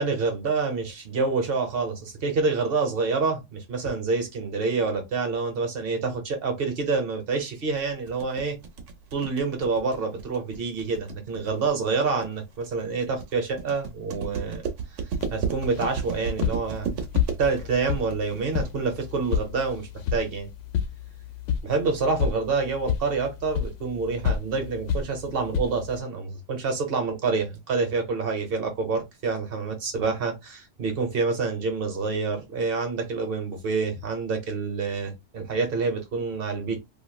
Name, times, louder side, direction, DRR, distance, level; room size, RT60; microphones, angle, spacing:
voice 1, 0.0-8.6 9.1-14.6 15.3-17.0 17.4-20.5 21.6-36.8, right 4 dB, 55° right, 1.1 m, -27 dB
sound 1, 7.8-19.7, right 6 dB, 85° right, 1.0 m, -34 dB
sound 2, 15.2-26.0, left 7 dB, 85° left, 0.9 m, -31 dB
3.0 x 2.6 x 2.2 m
omnidirectional pair, 1.2 m